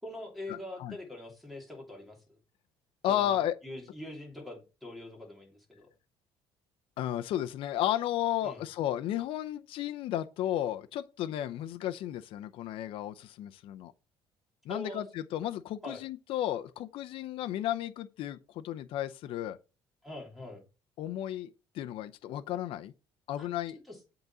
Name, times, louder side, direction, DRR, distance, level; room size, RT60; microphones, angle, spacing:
voice 1, 0.0-2.4 3.1-5.9 8.4-8.6 14.7-15.0 15.8-16.0 20.0-20.6 23.4-23.5 23.9-24.0, left 1 dB, ahead, 2.9 m, -43 dB
voice 2, 3.0-3.6 7.0-13.9 14.6-19.6 21.0-22.9 23.3-23.8, left 12 dB, 65° left, 0.6 m, -33 dB
8.0 x 4.0 x 6.0 m
cardioid pair, 135°, 10 cm